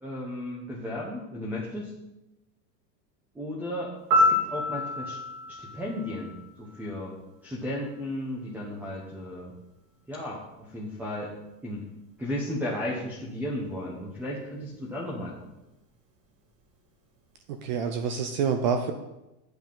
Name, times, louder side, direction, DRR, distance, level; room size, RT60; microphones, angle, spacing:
voice 1, 0.0-1.9 3.3-5.2 5.5-7.1 7.4-9.5 10.1-11.3 11.6-11.8 12.2-15.3, left 1 dB, 5° right, -4 dB, 0.8 m, -34 dB
Piano, 4.1-7.0 15.2-15.4, left 2 dB, 65° right, 3.4 m, -27 dB
voice 2, 17.5-18.9, right 6 dB, 30° right, 7 dB, 0.4 m, -27 dB
8.8 x 7.9 x 5.4 m, 0.95 s
supercardioid pair, 165°, 49 cm